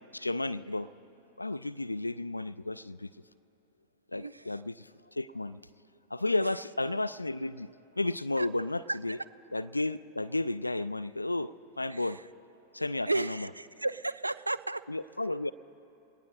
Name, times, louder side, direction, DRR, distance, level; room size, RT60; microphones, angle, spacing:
voice 1, 0.1-0.9 1.4-3.1 4.1-4.9 5.2-5.6 6.1-7.7 8.0-9.2 9.5-12.2 12.7-13.5 14.9-15.5, left 2 dB, 85° left, 15 dB, 0.4 m, -32 dB
voice 2, 4.1-4.6 6.4-6.5 8.4-8.5 8.9-9.2 11.9-12.2 13.1-14.8, right 2 dB, 85° right, 16 dB, 0.4 m, -34 dB
29.0 x 18.5 x 2.2 m, 2.9 s
figure-of-eight pair, 90°, 0 cm